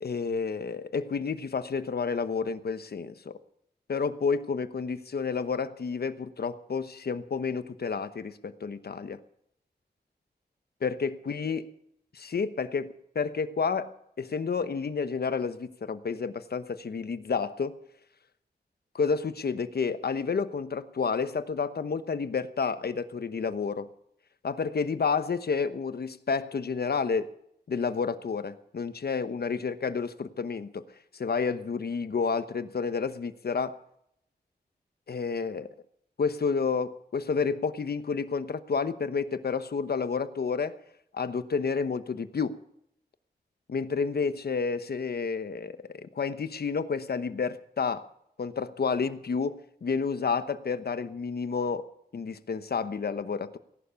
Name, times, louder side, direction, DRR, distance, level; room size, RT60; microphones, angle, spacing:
voice 1, 0.0-3.4 3.9-9.2 10.8-11.6 12.1-17.8 18.9-23.9 24.4-27.3 27.7-30.8 31.1-33.8 35.1-35.7 36.2-40.7 41.1-42.6 43.7-48.1 48.4-51.9 52.1-53.6, left 5 dB, 65° left, 12 dB, 1.0 m, -30 dB
17.5 x 11.5 x 6.9 m, 0.74 s
wide cardioid pair, 85°, 18 cm